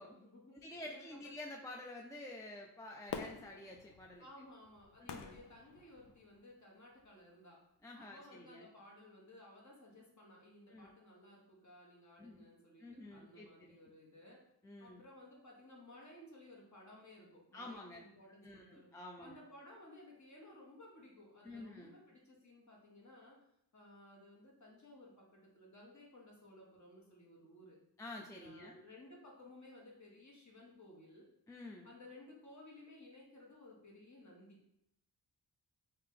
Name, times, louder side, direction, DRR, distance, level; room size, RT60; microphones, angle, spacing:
voice 1, 0.0-1.3 4.2-7.6 7.9-14.4 14.8-23.4 23.7-27.8 28.4-31.3 31.8-34.8, left 1 dB, 40° left, -2 dB, 1.3 m, -58 dB
voice 2, 0.6-4.2 5.0-5.4 7.8-8.7 10.7-10.9 12.2-12.5 12.8-13.8 14.6-15.0 17.5-18.0 18.4-19.4 21.4-21.9 28.0-28.8 31.5-31.9, left 2 dB, 10° left, 0 dB, 0.4 m, -50 dB
Fireworks, 3.1-6.4 7.0-7.1, left 6 dB, 70° left, 0.5 m, -48 dB
3.3 x 2.8 x 3.6 m, 0.78 s
cardioid pair, 60°, 43 cm